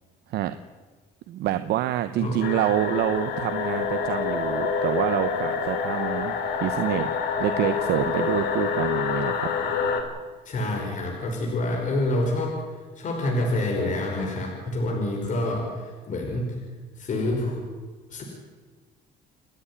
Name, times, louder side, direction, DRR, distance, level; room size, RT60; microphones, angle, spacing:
voice 1, 1.3-9.5, right 12 dB, 75° right, 10 dB, 0.9 m, -27 dB
sound 1, 2.4-10.0, left 6 dB, 80° left, 3.3 m, -27 dB
voice 2, 10.4-12.6 12.9-16.5 17.0-17.6 18.1-18.2, left 1 dB, 50° left, 0 dB, 5.2 m, -27 dB
28.5 x 10.0 x 10.0 m, 1.4 s
cardioid pair, 110°, 17 cm